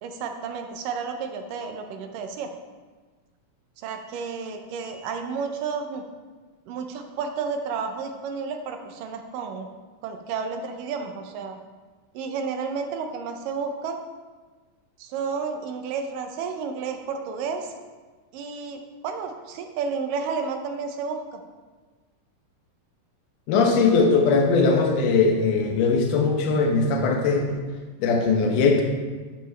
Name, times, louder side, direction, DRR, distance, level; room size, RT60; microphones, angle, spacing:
voice 1, 0.0-2.5 3.8-6.0 6.7-9.7 10.0-11.6 12.1-14.0 15.0-17.8 18.3-21.4, right 5 dB, 90° right, 5 dB, 2.5 m, -31 dB
voice 2, 23.5-27.6 28.0-28.8, left 4 dB, 75° left, 2 dB, 2.5 m, -20 dB
12.0 x 7.0 x 3.3 m, 1.4 s
omnidirectional pair, 3.7 m